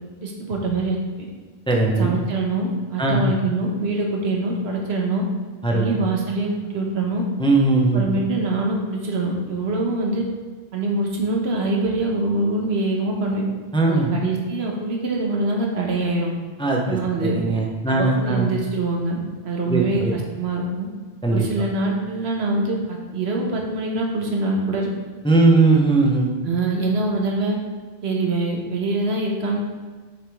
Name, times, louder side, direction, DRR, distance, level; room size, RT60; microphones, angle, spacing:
voice 1, 0.2-1.3 2.0-5.2 5.7-7.2 7.9-10.2 10.7-13.4 13.9-16.3 16.8-17.4 17.9-19.2 19.4-20.9 21.3-24.9 26.4-27.6 28.0-29.6, right 2 dB, 85° right, -1 dB, 1.3 m, -24 dB
voice 2, 1.7-2.1 3.0-3.2 5.6-5.9 7.4-8.2 13.7-14.1 16.6-18.5 19.7-20.1 21.2-21.4 25.2-26.3, right 3 dB, 5° left, -1 dB, 0.6 m, -19 dB
6.4 x 5.0 x 3.5 m, 1.3 s
omnidirectional pair, 1.1 m